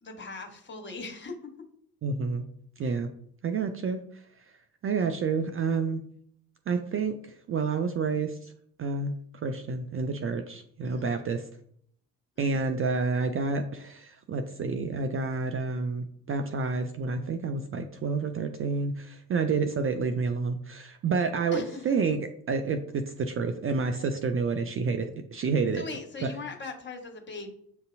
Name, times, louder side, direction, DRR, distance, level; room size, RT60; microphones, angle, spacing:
voice 1, 0.0-1.5 2.8-3.0 10.8-11.1 12.4-12.6 21.5-22.0 25.7-27.5, left 4 dB, 25° left, 3 dB, 1.4 m, -40 dB
voice 2, 2.0-2.4 2.8-3.1 3.4-4.0 4.8-6.0 6.7-7.2 7.5-8.4 8.8-9.1 9.4-11.4 12.4-25.1 25.3-25.8 26.2-26.3, right 4 dB, 30° right, 6 dB, 0.4 m, -29 dB
6.8 x 2.6 x 2.6 m, 0.66 s
figure-of-eight pair, 45°, 48 cm